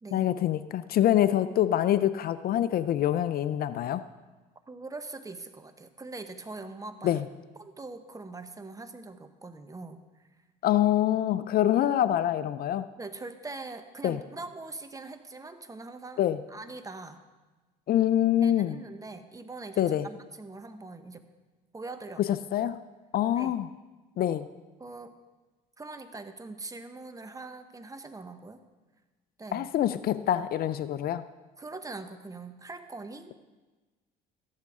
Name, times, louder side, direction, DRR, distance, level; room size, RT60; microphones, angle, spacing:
voice 1, 0.1-4.0 7.0-7.2 10.6-12.9 14.0-14.2 16.2-16.4 17.9-18.8 19.8-20.1 22.2-22.8 23.1-23.7 24.2-24.5 29.5-31.2, left 11 dB, 55° left, 14 dB, 0.5 m, -25 dB
voice 2, 4.7-7.2 7.6-10.0 13.0-16.2 16.5-17.2 18.4-21.3 21.7-22.2 23.4-23.6 24.8-25.1 25.8-28.6 29.4-29.7 31.6-33.3, right 3 dB, 20° right, 9 dB, 1.0 m, -42 dB
14.0 x 11.5 x 3.6 m, 1.2 s
supercardioid pair, 90°, 19 cm